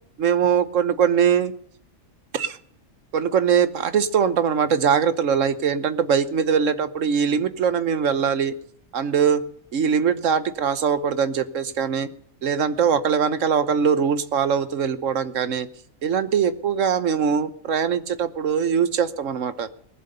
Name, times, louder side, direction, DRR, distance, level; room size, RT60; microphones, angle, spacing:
voice 1, 0.2-1.5 2.3-2.6 3.1-8.5 8.9-9.4 9.7-12.1 12.4-15.7 16.0-19.7, right 7 dB, 75° right, 13 dB, 1.3 m, -22 dB
19.5 x 7.8 x 6.8 m, 0.63 s
omnidirectional pair, 1.4 m